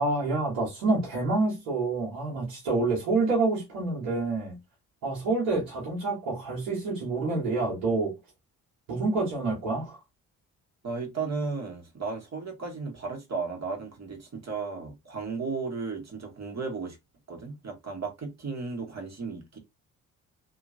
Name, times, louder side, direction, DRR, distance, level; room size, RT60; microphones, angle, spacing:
voice 1, 0.0-4.6 5.0-8.2 8.9-10.0, right 3 dB, 80° right, 1.8 m, -27 dB
voice 2, 10.8-17.0 17.3-19.6, right 4 dB, 40° right, 2.0 m, -34 dB
3.7 x 3.0 x 2.7 m
hypercardioid pair, 50°, 41 cm